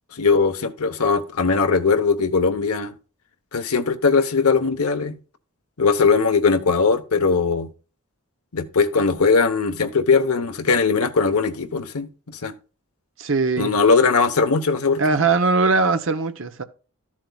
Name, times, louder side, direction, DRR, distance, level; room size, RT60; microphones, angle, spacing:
voice 1, 0.1-2.9 3.5-5.2 5.8-7.7 8.5-12.5 13.6-15.0, left 4 dB, 85° left, 1.0 m, -20 dB
voice 2, 13.2-13.7 15.0-16.6, right 4 dB, 60° right, 0.8 m, -20 dB
13.0 x 7.4 x 2.3 m
head